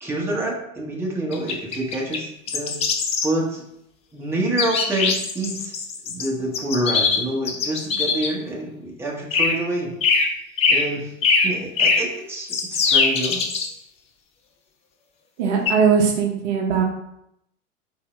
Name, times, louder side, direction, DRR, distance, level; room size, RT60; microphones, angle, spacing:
voice 1, 0.0-2.7 3.2-3.6 4.1-5.7 6.1-10.3 10.7-11.1 11.4-13.4, right 1 dB, 5° right, -4 dB, 1.0 m, -27 dB
sound 1, 1.3-2.2 2.5-3.3 4.6-6.3 6.5-8.3 9.3-9.6 10.0-10.3 10.6-10.9 11.2-12.1 12.5-13.7 15.7-15.8, left 4 dB, 15° left, 0.3 m, -21 dB
voice 2, 15.4-16.8, right 6 dB, 55° right, 1 dB, 0.9 m, -19 dB
4.3 x 2.8 x 3.1 m, 0.78 s
figure-of-eight pair, 85°, 41 cm